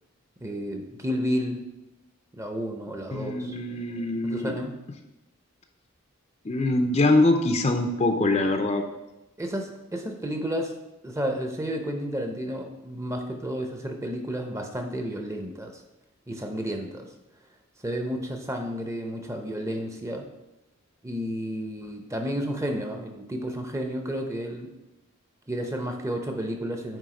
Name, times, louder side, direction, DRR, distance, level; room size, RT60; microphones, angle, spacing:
voice 1, 0.4-1.6 2.3-3.6 4.2-4.8 9.4-10.7 11.0-15.8 16.3-17.1 17.8-20.2 21.0-24.7 25.5-27.0, equal, 15° right, 4 dB, 0.6 m, -31 dB
voice 2, 3.1-4.5 6.5-8.8, left 2 dB, 30° left, 5 dB, 0.5 m, -23 dB
9.1 x 3.6 x 4.8 m, 0.95 s
head